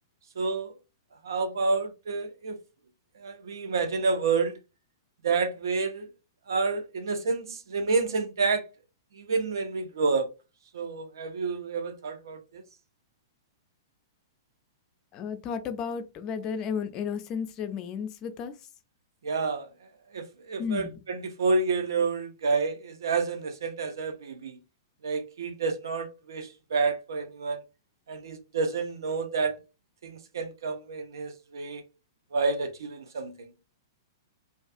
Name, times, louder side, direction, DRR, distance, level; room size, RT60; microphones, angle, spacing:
voice 1, 0.4-0.7 1.2-2.6 3.2-4.6 5.2-6.1 6.5-8.7 9.1-10.3 10.7-12.6 19.2-19.7 20.1-24.6 25.0-27.6 28.1-29.6 30.0-31.8 32.3-33.5, right 4 dB, 70° right, 0.5 m, -29 dB
voice 2, 15.1-18.5 20.6-21.0, left 6 dB, 30° left, 0.4 m, -33 dB
2.4 x 2.3 x 2.5 m
hypercardioid pair, 110°, 2 cm